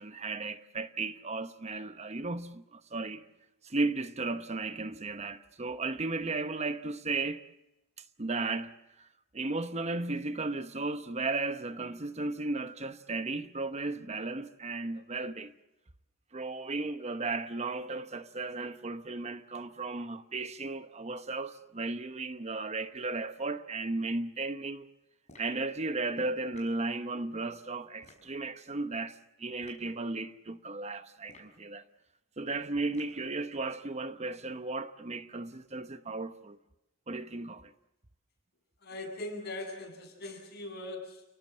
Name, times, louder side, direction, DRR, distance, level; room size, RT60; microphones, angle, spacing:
voice 1, 0.0-3.2 3.6-7.4 8.2-8.7 9.0-9.1 9.3-15.5 16.3-24.9 25.4-31.8 32.4-36.6 37.1-37.7, right 3 dB, 35° right, 0.9 m, -35 dB
sound 1, 25.3-25.6 26.5-26.8 28.0-28.3 29.6-29.9 31.2-31.6 32.9-33.3, left 2 dB, 35° left, 6.5 m, -56 dB
voice 2, 38.8-41.2, left 2 dB, 55° left, 8.0 m, -40 dB
30.0 x 18.5 x 7.6 m
head